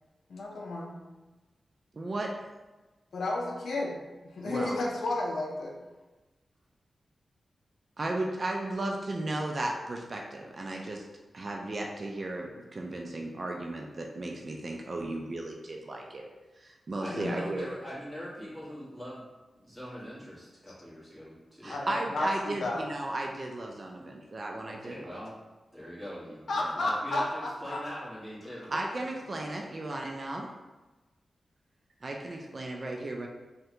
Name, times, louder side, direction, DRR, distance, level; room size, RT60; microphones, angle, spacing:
voice 1, 0.3-0.9 3.1-4.0 4.3-5.8 17.1-17.6 21.7-22.3 22.6-22.8 26.5-28.0, left 2 dB, 75° left, -1 dB, 0.4 m, -32 dB
voice 2, 1.9-2.3 4.4-4.8 8.0-11.1 11.3-16.2 16.6-17.7 21.6-24.9 28.7-30.5 32.0-33.3, right 2 dB, 45° right, 1 dB, 0.3 m, -35 dB
voice 3, 16.9-19.2 19.5-21.9 24.7-25.3 25.7-28.8, equal, 5° right, -9 dB, 1.4 m, -42 dB
3.3 x 2.1 x 2.8 m, 1.2 s
cardioid pair, 75°, 0 cm